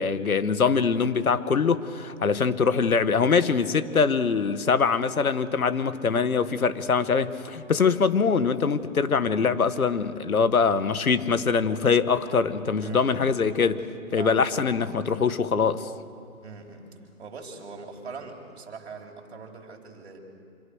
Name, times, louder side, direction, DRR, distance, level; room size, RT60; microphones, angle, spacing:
voice 1, 0.0-13.8 14.1-15.9, left 5 dB, 75° left, 12 dB, 1.7 m, -23 dB
voice 2, 12.8-13.3 14.2-14.7 16.4-16.8 17.2-20.2, right 5 dB, 45° right, 2 dB, 4.4 m, -41 dB
26.5 x 26.0 x 6.5 m, 2.4 s
hypercardioid pair, 170°, 42 cm